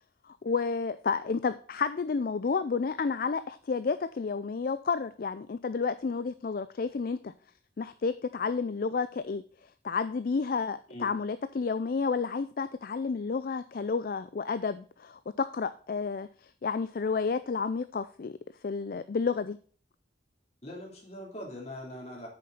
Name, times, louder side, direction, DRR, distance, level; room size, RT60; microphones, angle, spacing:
voice 1, 0.3-7.3 7.8-9.4 9.8-16.3 16.6-18.3 18.6-19.6, left 5 dB, 50° left, 13 dB, 0.4 m, -31 dB
voice 2, 20.6-22.3, left 1 dB, 35° left, -1 dB, 3.1 m, -42 dB
8.5 x 6.5 x 4.0 m, 0.43 s
head